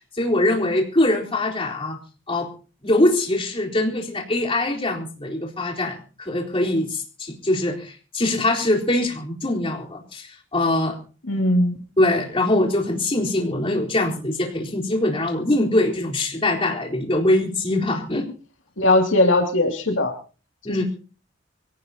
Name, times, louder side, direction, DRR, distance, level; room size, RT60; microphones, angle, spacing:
voice 1, 0.2-2.0 2.3-2.5 2.8-11.0 12.0-18.3 20.6-20.8, left 1 dB, 30° left, -1 dB, 4.0 m, -22 dB
voice 2, 11.3-11.8 18.8-20.1, left 1 dB, 80° left, 3 dB, 2.5 m, -19 dB
25.0 x 17.5 x 2.9 m, 0.37 s
head